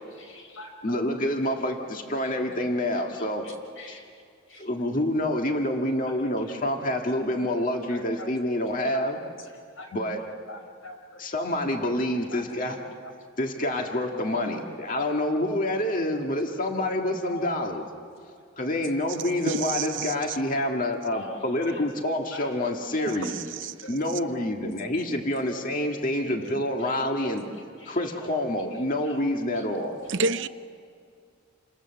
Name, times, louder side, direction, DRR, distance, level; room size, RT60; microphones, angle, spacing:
voice 1, 0.2-1.0 3.4-4.0 4.5-4.6 7.9-8.3 8.9-9.0 9.8-9.9 10.5-11.0 12.3-12.4 13.0-13.1 14.5-14.6 14.9-15.0 17.2-17.5 21.1-21.4 22.3-22.5 23.0-23.3 23.8-23.9 27.2-27.3 27.8-28.0 29.0-29.2, left 3 dB, 75° left, 4.7 m, -42 dB
voice 2, 0.8-3.5 4.6-9.2 9.9-10.2 11.2-12.8 13.4-17.8 18.6-23.3 23.9-27.4 27.9-29.9, left 1 dB, 40° left, 1.9 m, -27 dB
voice 3, 19.4-20.4 23.1-23.7 30.1-30.5, right 4 dB, 60° right, 0.8 m, -29 dB
28.5 x 26.5 x 7.1 m
head